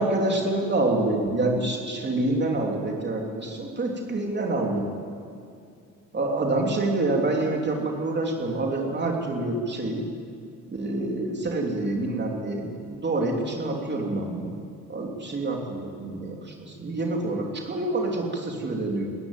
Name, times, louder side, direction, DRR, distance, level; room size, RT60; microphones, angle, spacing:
voice 1, 0.0-4.9 6.1-10.0 10.7-12.7 13.0-14.5 14.9-19.1, right 2 dB, 35° right, 0 dB, 3.4 m, -27 dB
19.5 x 15.0 x 9.3 m, 2.4 s
cardioid pair, 90°, 30 cm